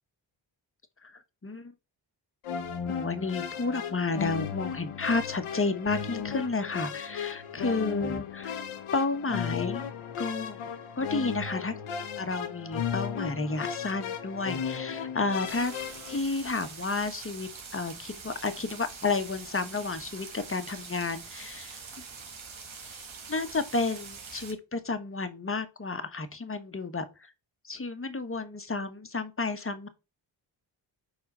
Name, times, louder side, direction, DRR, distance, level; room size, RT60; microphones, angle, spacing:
voice 1, 1.0-1.7 2.9-8.5 8.9-9.9 10.2-10.6 11.0-11.8 12.2-15.7 16.1-21.8 22.8-23.0 23.3-27.3 27.6-29.9, left 3 dB, 25° left, 1.2 m, -31 dB
sound 1, 2.4-16.2, left 7 dB, 85° left, 1.0 m, -35 dB
sound 2, 15.4-24.5, right 5 dB, 65° right, 1.7 m, -44 dB
4.6 x 4.4 x 5.5 m
supercardioid pair, 45°, 50 cm